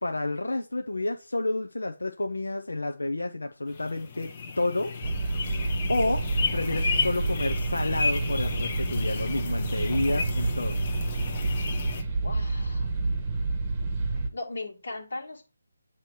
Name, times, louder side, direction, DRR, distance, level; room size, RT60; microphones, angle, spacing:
voice 1, 0.0-4.3 4.6-4.9 5.9-6.2 6.5-10.8, left 2 dB, 90° left, 5 dB, 0.6 m, -29 dB
sound 1, 3.7-12.0, left 4 dB, 35° left, 0.8 m, -33 dB
sound 2, 5.0-14.3, right 3 dB, 25° right, 1.0 m, -29 dB
voice 2, 12.2-13.0 14.1-15.4, left 2 dB, 70° left, -2 dB, 1.7 m, -38 dB
7.7 x 2.9 x 4.7 m, 0.32 s
figure-of-eight pair, 160°, 0 cm